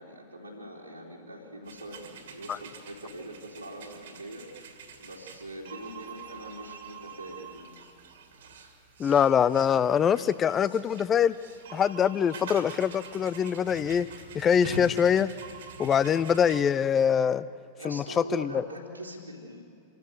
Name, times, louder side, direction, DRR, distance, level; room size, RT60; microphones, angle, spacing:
voice 1, 0.0-4.5 5.0-7.8 17.8-19.6, right 1 dB, 90° right, -5 dB, 3.5 m, -42 dB
sound 1, 1.6-16.6, right 4 dB, 60° right, 2.5 m, -45 dB
voice 2, 9.0-11.3 11.7-14.1 14.3-15.3 15.8-17.4 17.8-18.5, left 8 dB, 25° left, 17 dB, 0.6 m, -24 dB
26.5 x 14.5 x 9.3 m, 2.5 s
figure-of-eight pair, 90°, 0 cm